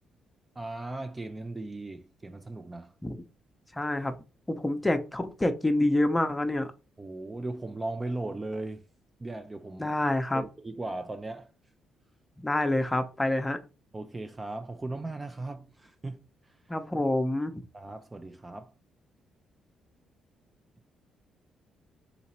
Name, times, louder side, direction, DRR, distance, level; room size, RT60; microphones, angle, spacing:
voice 1, 0.6-2.9 7.0-8.8 9.2-9.9 10.3-11.5 13.9-16.2 16.5-16.6 17.7-18.7, right 2 dB, 20° right, 0.4 m, -37 dB
voice 2, 3.7-4.2 4.5-6.7 9.8-10.4 12.4-13.6 16.7-17.6, left 1 dB, 15° left, 0.7 m, -27 dB
4.0 x 2.8 x 4.2 m
cardioid pair, 90°, 0 cm